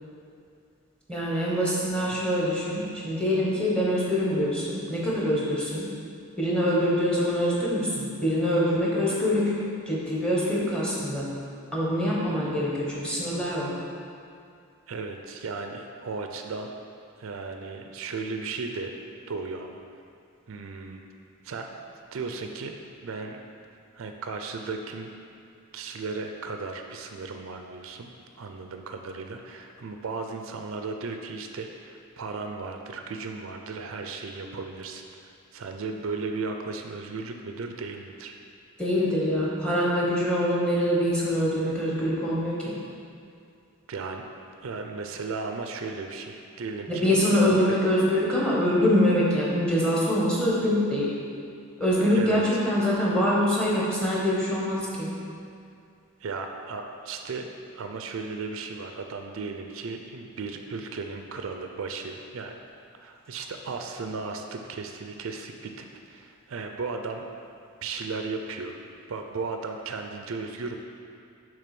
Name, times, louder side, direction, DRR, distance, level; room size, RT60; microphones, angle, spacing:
voice 1, 1.1-5.9 6.4-9.5 9.9-11.3 11.7-13.8 38.8-42.8 46.9-51.1 51.8-55.1, equal, 5° left, -6 dB, 1.0 m, -24 dB
voice 2, 14.9-16.7 17.2-18.9 19.3-19.8 20.5-21.0 21.4-21.7 22.1-22.7 23.0-23.4 23.9-25.1 25.7-28.1 28.4-38.3 43.9-44.2 44.6-47.1 47.4-47.8 52.1-52.4 56.2-57.5 57.7-62.6 63.0-65.8 66.1-67.2 67.8-68.8 69.1-70.8, right 4 dB, 65° right, 5 dB, 0.4 m, -35 dB
6.7 x 3.4 x 5.9 m, 2.4 s
head